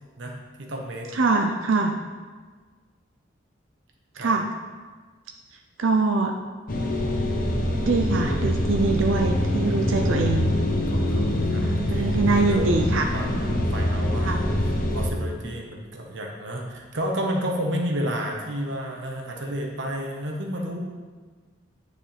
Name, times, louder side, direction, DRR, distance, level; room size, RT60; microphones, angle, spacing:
voice 1, 0.2-1.1 4.2-4.3 9.7-10.1 10.9-12.7 13.1-20.8, equal, 70° right, 1 dB, 1.2 m, -32 dB
voice 2, 1.1-1.9 4.2-4.5 5.8-6.3 7.9-10.5 11.6-13.1 14.2-14.4, right 3 dB, 85° right, 3 dB, 0.6 m, -23 dB
sound 1, 6.7-15.1, left 1 dB, 45° left, 1.0 m, -24 dB
9.7 x 6.5 x 3.4 m, 1.4 s
head